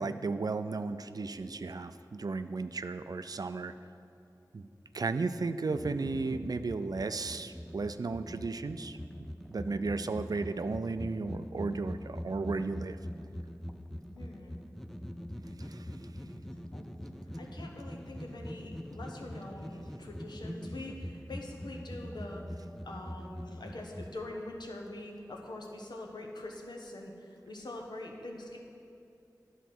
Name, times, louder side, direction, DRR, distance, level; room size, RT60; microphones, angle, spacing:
voice 1, 0.0-3.7 4.5-4.7 4.9-9.0 9.5-13.0 15.6-15.9, right 3 dB, 60° right, 11 dB, 0.4 m, -34 dB
sound 1, 5.7-24.1, equal, 5° left, 0.4 m, -43 dB
voice 2, 14.1-14.6 16.7-16.8 17.4-22.5 22.8-28.6, left 2 dB, 85° left, 0 dB, 1.0 m, -44 dB
10.5 x 4.0 x 6.0 m, 2.6 s
wide cardioid pair, 45°, 7 cm